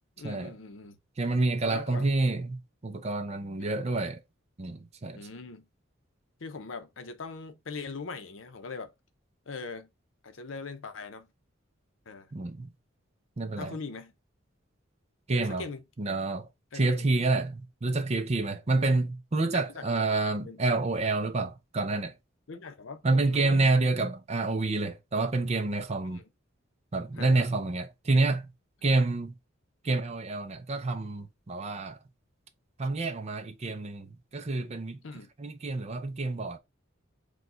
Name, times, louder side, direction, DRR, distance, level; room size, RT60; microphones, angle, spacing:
voice 1, 0.2-1.0 1.6-2.1 3.6-3.8 5.1-5.7 6.4-8.9 9.5-9.9 10.2-11.3 12.1-12.3 13.5-14.1 15.3-15.8 16.7-17.1 19.5-20.6 22.5-23.7 26.0-26.3 27.2-27.5 35.0-35.3, left 4 dB, 70° left, 0.7 m, -41 dB
voice 2, 1.2-4.2 4.6-5.2 12.3-12.7 13.4-13.8 15.3-15.6 16.0-16.5 16.7-22.1 23.0-26.2 26.9-28.5 28.8-29.3 29.8-32.0 32.8-35.0 35.4-36.6, right 3 dB, 35° right, 0.6 m, -28 dB
4.7 x 2.3 x 3.8 m
head